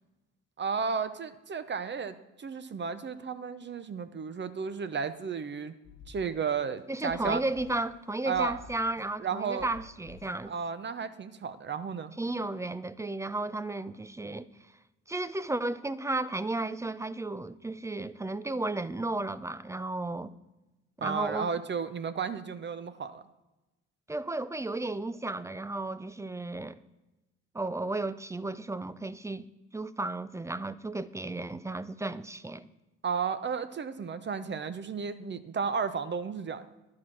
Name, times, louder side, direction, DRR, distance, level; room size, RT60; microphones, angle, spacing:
voice 1, 0.6-5.7 6.1-7.4 8.2-8.6 9.2-9.7 10.5-12.1 21.0-23.2 33.0-36.7, right 6 dB, 35° right, 12 dB, 0.7 m, -33 dB
sound 1, 5.8-6.8 7.1-8.1 8.3-9.3 9.6-10.6, left 5 dB, 75° left, 1.3 m, -51 dB
voice 2, 6.9-10.5 12.2-14.5 15.1-20.3 21.0-21.5 24.1-26.8 27.5-29.5 29.7-32.7, right 2 dB, 10° right, 15 dB, 0.4 m, -33 dB
11.5 x 4.9 x 6.0 m, 1.0 s
supercardioid pair, 65°, 32 cm